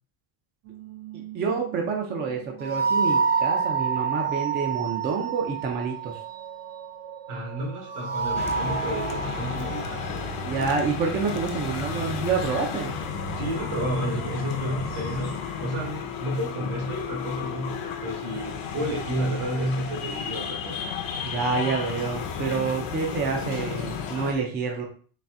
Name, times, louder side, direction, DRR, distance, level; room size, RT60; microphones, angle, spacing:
sound 1, 0.6-15.2, right 5 dB, 55° right, 0.7 m, -31 dB
voice 1, 1.1-6.2 10.4-13.0 21.2-24.8, right 5 dB, 25° right, 1 dB, 0.4 m, -28 dB
voice 2, 7.3-10.0 13.3-20.8, right 1 dB, 75° right, 0 dB, 1.6 m, -31 dB
sound 2, 8.4-24.3, left 7 dB, 45° left, 0.6 m, -33 dB
4.1 x 2.5 x 3.5 m, 0.43 s
cardioid pair, 170°, 50 cm